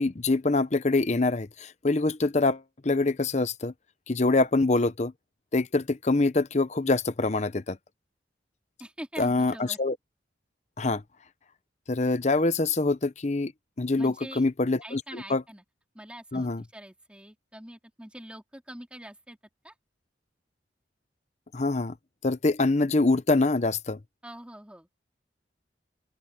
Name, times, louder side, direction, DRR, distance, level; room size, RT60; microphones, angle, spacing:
voice 1, 0.0-3.7 4.1-5.1 5.5-7.8 9.2-9.5 9.8-10.0 10.8-11.0 11.9-13.5 13.8-15.4 16.3-16.6 21.5-21.9 22.2-24.0, left 3 dB, 40° left, 0.8 m, -25 dB
voice 2, 8.8-9.8 14.0-14.4 14.8-15.6 15.9-19.4 19.6-19.8 24.2-24.9, right 1 dB, 5° right, 2.8 m, -44 dB
open air
head